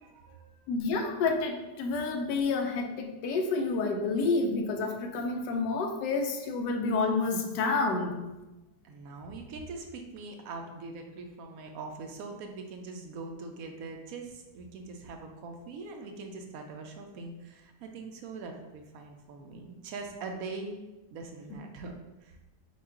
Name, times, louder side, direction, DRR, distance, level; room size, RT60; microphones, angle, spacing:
voice 1, 0.0-0.8 8.8-20.8 21.1-21.9 22.2-22.4, right 3 dB, 70° right, 3 dB, 0.9 m, -42 dB
voice 2, 0.7-8.2, left 3 dB, 85° left, 2 dB, 1.3 m, -29 dB
5.4 x 2.3 x 3.7 m, 1.0 s
omnidirectional pair, 1.8 m